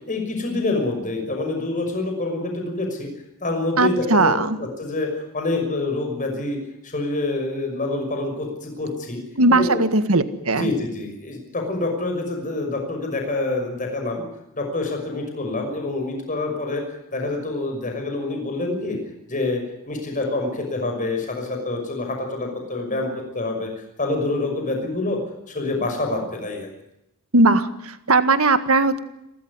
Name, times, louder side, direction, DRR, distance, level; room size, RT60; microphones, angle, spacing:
voice 1, 0.1-3.1 3.4-6.6 6.8-9.2 9.5-9.8 10.5-14.2 14.5-16.8 17.1-19.0 19.3-19.6 19.9-23.7 24.0-25.2 25.5-26.7, left 2 dB, 35° left, 3 dB, 6.0 m, -26 dB
voice 2, 3.8-4.6 9.4-10.7 27.3-29.0, right 2 dB, 70° right, 11 dB, 1.7 m, -18 dB
28.5 x 13.5 x 9.7 m, 0.86 s
head